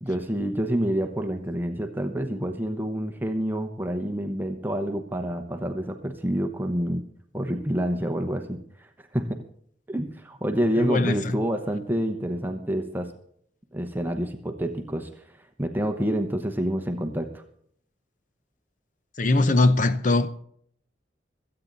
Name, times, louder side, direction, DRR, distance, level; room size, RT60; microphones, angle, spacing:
voice 1, 0.0-7.0 7.3-9.4 9.9-13.1 13.7-17.4, equal, 10° right, 0.9 m, -28 dB
voice 2, 10.8-11.4 19.2-20.3, left 2 dB, 40° left, 0.7 m, -21 dB
26.0 x 8.8 x 4.0 m
head